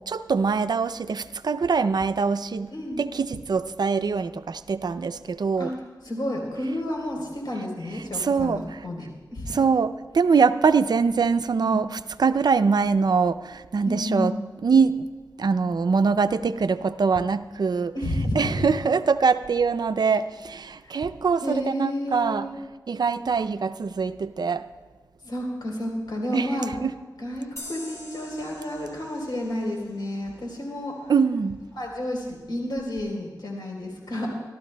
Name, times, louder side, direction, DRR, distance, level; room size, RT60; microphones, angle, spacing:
voice 1, 0.1-2.7 3.0-5.7 8.1-8.8 9.5-14.3 14.6-15.1 15.4-17.9 18.3-22.5 22.9-24.7 26.3-26.9 31.1-31.6, right 5 dB, 65° right, 12 dB, 0.5 m, -23 dB
voice 2, 2.7-3.0 5.6-5.7 6.0-9.7 11.6-11.9 13.8-14.4 17.9-18.5 21.4-22.5 25.2-26.7 27.2-31.1 31.8-34.3, left 1 dB, 75° left, 0 dB, 3.7 m, -31 dB
sound 1, 27.6-30.9, left 1 dB, 40° left, 3.0 m, -44 dB
25.0 x 13.5 x 2.2 m, 1.3 s
wide cardioid pair, 60°, 7 cm